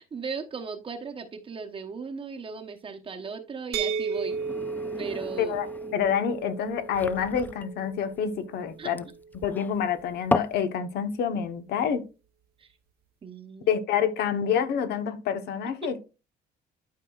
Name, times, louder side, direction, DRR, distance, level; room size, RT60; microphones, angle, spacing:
voice 1, 0.0-4.4 5.0-5.5 8.8-8.9 12.6-12.7 13.2-13.8 15.8-16.0, right 5 dB, 30° right, 0.9 m, -37 dB
sound 1, 3.7-9.5, right 5 dB, 70° right, 0.7 m, -35 dB
sound 2, 4.1-10.6, left 2 dB, 10° left, 0.3 m, -35 dB
voice 2, 5.9-9.0 9.4-12.0 13.7-16.0, left 8 dB, 75° left, 1.1 m, -27 dB
11.5 x 4.8 x 2.4 m
cardioid pair, 110°, 17 cm